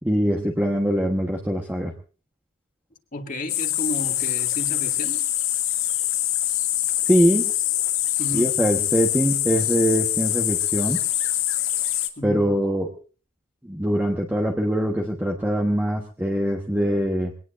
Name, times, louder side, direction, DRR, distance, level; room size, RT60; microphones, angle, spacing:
voice 1, 0.0-1.9 7.1-7.5 8.3-11.0 12.2-12.9 13.6-17.3, equal, 10° right, 0 dB, 1.3 m, -23 dB
voice 2, 3.1-5.2 8.2-8.5 12.2-12.5, left 1 dB, 40° left, 4 dB, 2.2 m, -32 dB
sound 1, 3.5-12.1, left 13 dB, 80° left, 1.7 m, -24 dB
23.0 x 18.5 x 2.6 m, 0.38 s
head